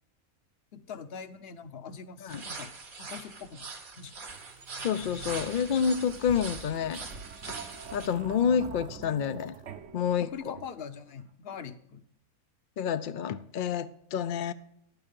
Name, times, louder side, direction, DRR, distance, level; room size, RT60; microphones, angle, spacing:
voice 1, 0.7-2.7 3.0-3.7 4.0-4.2 10.2-12.0, left 7 dB, 50° left, 13 dB, 0.8 m, -43 dB
sound 1, 2.3-8.1, right 4 dB, 75° right, 2.2 m, -42 dB
sound 2, 4.3-11.0, right 6 dB, 60° right, 1.2 m, -46 dB
voice 2, 4.8-7.0 7.9-9.6 9.9-10.6 12.8-14.5, left 7 dB, 70° left, 11 dB, 0.4 m, -28 dB
11.0 x 9.3 x 5.3 m, 0.73 s
omnidirectional pair, 1.5 m